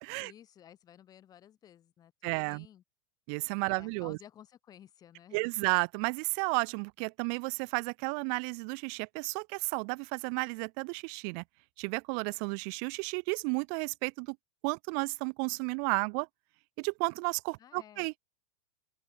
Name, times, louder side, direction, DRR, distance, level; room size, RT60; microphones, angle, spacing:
voice 1, 0.2-2.8 3.6-5.4 17.6-18.1, left 10 dB, 30° left, 7.4 m, -55 dB
voice 2, 2.2-2.7 3.3-4.2 5.3-11.4 11.8-14.4 14.6-16.3 16.8-18.1, right 40 dB or more, 55° right, 1.3 m, -32 dB
open air
hypercardioid pair, 100°, 12 cm